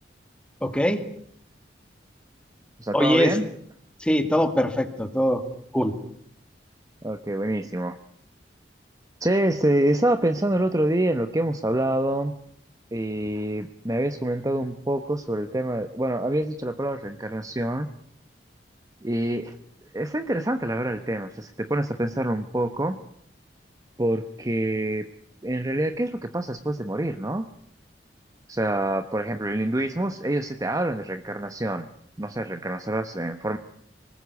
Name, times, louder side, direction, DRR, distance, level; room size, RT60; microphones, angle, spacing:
voice 1, 0.6-1.0 2.9-3.3 4.0-5.4 5.7-5.9, equal, 5° left, 8 dB, 2.1 m, -22 dB
voice 2, 2.8-3.5 7.0-8.0 9.2-12.3 12.9-17.9 19.0-19.5 19.9-23.0 24.0-25.1 25.4-27.5 28.5-31.9 32.2-33.6, right 1 dB, 20° right, 8 dB, 1.0 m, -26 dB
25.5 x 19.5 x 8.3 m, 0.65 s
head